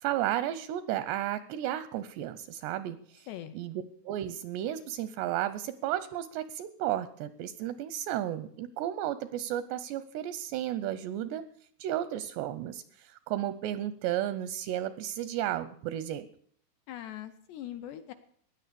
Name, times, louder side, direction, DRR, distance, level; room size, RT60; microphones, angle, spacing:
voice 1, 0.0-3.3 3.5-11.4 11.8-16.3, right 12 dB, 80° right, 15 dB, 2.5 m, -33 dB
voice 2, 3.3-3.8 16.9-18.1, left 12 dB, 80° left, 9 dB, 2.5 m, -42 dB
16.5 x 10.5 x 6.8 m, 0.62 s
omnidirectional pair, 5.6 m